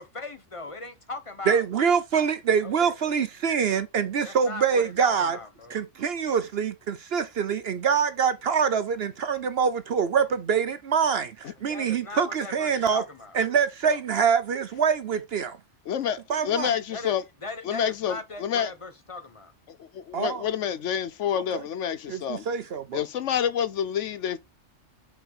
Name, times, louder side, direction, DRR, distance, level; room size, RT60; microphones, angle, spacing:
voice 1, 0.0-1.6 2.6-3.2 4.2-5.8 11.7-13.4 16.9-17.1 17.4-19.5, left 3 dB, 25° left, 1.0 m, -39 dB
voice 2, 1.5-5.4 5.7-13.0 13.3-15.6 16.3-16.7 20.1-20.4 21.5-21.6 22.1-23.0, right 6 dB, 55° right, 0.8 m, -25 dB
voice 3, 15.9-17.2 17.6-18.7 19.7-22.4 22.9-24.4, left 9 dB, 70° left, 1.0 m, -28 dB
4.9 x 4.8 x 5.6 m
omnidirectional pair, 1.3 m